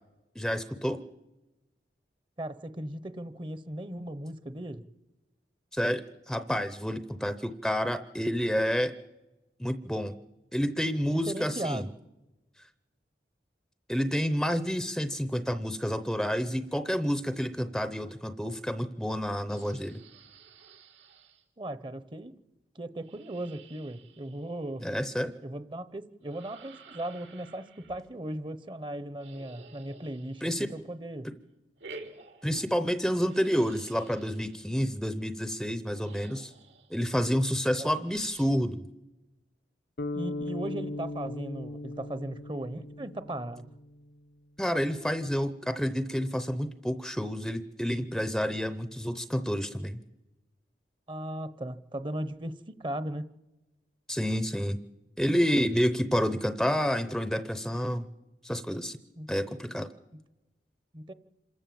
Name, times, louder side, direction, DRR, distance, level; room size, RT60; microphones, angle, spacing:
voice 1, 0.4-1.0 5.7-8.9 9.6-10.1 10.5-11.8 13.9-20.0 24.8-25.3 30.4-30.7 31.2-31.3 32.4-36.5 36.9-38.8 44.6-50.0 54.1-54.8 55.2-58.1 58.4-59.0 59.3-59.9, equal, ahead, 12 dB, 0.6 m, -29 dB
voice 2, 2.4-4.8 11.1-11.9 21.6-22.3 22.7-24.9 25.4-31.3 37.8-37.9 40.1-43.7 51.1-52.5 52.8-53.3 59.2-59.3 60.9-61.1, right 1 dB, 25° right, 14 dB, 0.8 m, -37 dB
sound 1, 19.5-21.4 23.0-24.8 26.2-28.1 29.2-30.8 31.8-32.9 33.2-34.8 35.7-35.8 36.0-37.1 38.1-38.7, right 3 dB, 85° right, 2.7 m, -52 dB
sound 2, 40.0-44.2, left 2 dB, 60° left, 0.6 m, -38 dB
26.5 x 14.0 x 7.6 m, 1.1 s
head